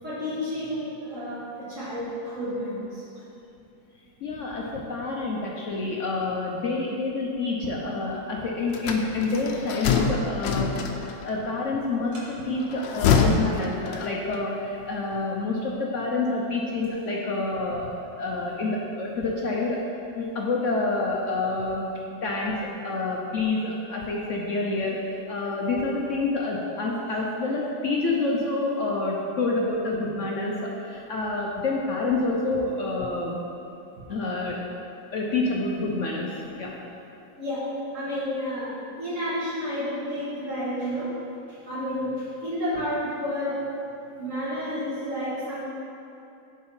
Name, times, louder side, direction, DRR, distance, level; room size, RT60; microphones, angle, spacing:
voice 1, 0.0-3.2 4.5-4.7 27.1-27.2 37.4-41.2 41.5-43.7 44.1-45.6, equal, 40° right, -9 dB, 2.5 m, -31 dB
voice 2, 4.2-10.7 11.0-19.8 20.1-21.9 22.2-33.4 34.1-34.6 35.1-36.7, left 3 dB, 60° left, -2 dB, 0.8 m, -28 dB
sound 1, 8.7-11.3 12.6-14.4, left 6 dB, 80° left, 1.3 m, -25 dB
10.5 x 4.8 x 4.4 m, 2.8 s
omnidirectional pair, 2.1 m